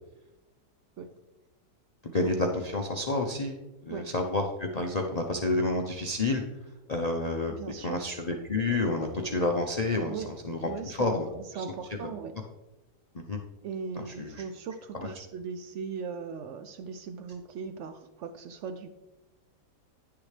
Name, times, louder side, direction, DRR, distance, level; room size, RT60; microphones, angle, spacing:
voice 1, 2.0-3.6 3.8-6.4 6.9-7.5 7.8-10.7 11.0-11.3 11.6-11.7 13.1-13.4 14.0-14.3 15.0-15.1, left 2 dB, 75° left, 1 dB, 0.3 m, -29 dB
voice 2, 7.5-8.0 10.1-10.3 10.6-12.4 13.6-18.9, right 6 dB, 85° right, 9 dB, 0.6 m, -38 dB
10.5 x 6.8 x 3.3 m, 1.0 s
omnidirectional pair, 1.8 m